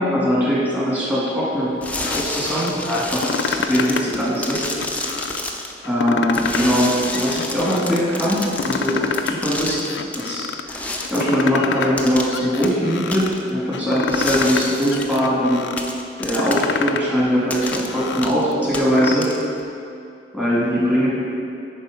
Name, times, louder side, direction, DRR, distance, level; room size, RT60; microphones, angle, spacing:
voice 1, 0.0-1.7 2.0-4.6 5.8-9.8 10.2-10.8 11.1-15.6 16.2-19.2 20.3-21.1, equal, 10° right, -8 dB, 1.9 m, -21 dB
sound 1, 1.8-5.7 6.3-10.3 10.7-11.3 12.0-12.4 12.6-12.7 13.1-13.4 14.1-15.2 15.8-16.7 17.5-17.9 18.2-18.4 18.7-19.6, left 2 dB, 10° left, 0.4 m, -29 dB
sound 2, 1.9-2.7 3.1-4.1 4.5-5.4 5.8-6.8 7.1-8.0 8.4-9.4 9.7-10.6 11.0-12.0 12.3-13.3 13.7-14.6 14.9-15.8 16.2-17.1 17.5-19.1, left 5 dB, 70° left, 0.4 m, -27 dB
10.0 x 4.3 x 5.0 m, 2.6 s
head